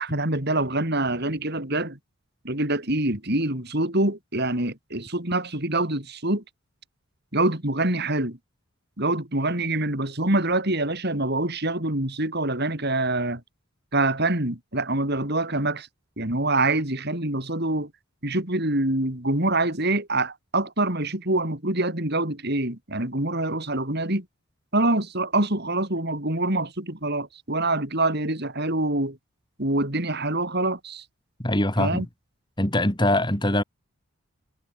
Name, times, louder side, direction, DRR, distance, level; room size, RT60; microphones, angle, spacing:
voice 1, 0.0-2.0 2.4-6.4 7.3-8.4 9.0-13.4 13.9-15.9 16.2-17.9 18.2-24.3 24.7-29.2 29.6-31.0 31.8-32.1, right 2 dB, 45° right, 3.9 m, -25 dB
voice 2, 31.4-32.1 32.6-33.6, left 1 dB, 20° left, 3.0 m, -22 dB
head